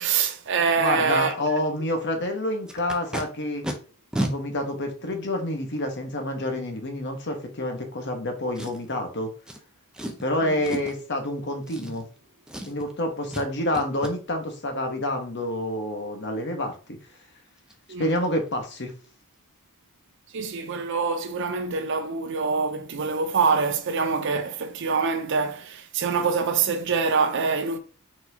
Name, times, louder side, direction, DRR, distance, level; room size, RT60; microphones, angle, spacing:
voice 1, 0.0-1.3 10.4-10.6 17.9-18.1 20.3-27.8, right 5 dB, 55° right, 0.5 m, -25 dB
voice 2, 0.8-3.6 4.2-9.3 10.2-12.1 12.7-17.0 18.0-18.9, left 1 dB, 50° left, 1.0 m, -28 dB
Packing tape duct tape, 2.7-3.2 3.6-3.7 4.1-4.3 5.1-5.2 8.5-9.0 9.5-9.6 9.9-10.2 10.6-11.0 11.6-12.2 12.5-12.9 13.3-13.5 13.7-14.1 17.2-17.3 17.6-17.7 18.1-18.3 18.5-18.8 19.0-19.1, right 1 dB, 5° right, 0.5 m, -32 dB
4.4 x 4.2 x 2.7 m
head